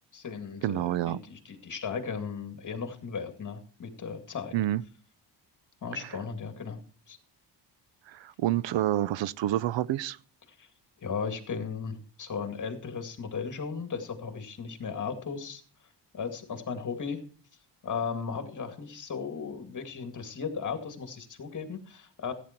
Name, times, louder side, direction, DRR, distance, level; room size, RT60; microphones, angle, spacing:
voice 1, 0.1-4.6 5.8-6.8 7.1-7.2 10.6-10.7 11.0-15.6 16.1-17.2 17.8-22.3, left 6 dB, 45° left, 2.2 m, -36 dB
voice 2, 0.6-1.2 4.5-4.8 8.1-10.2, right 13 dB, 85° right, 0.6 m, -28 dB
14.5 x 9.1 x 4.5 m
wide cardioid pair, 140°, 43 cm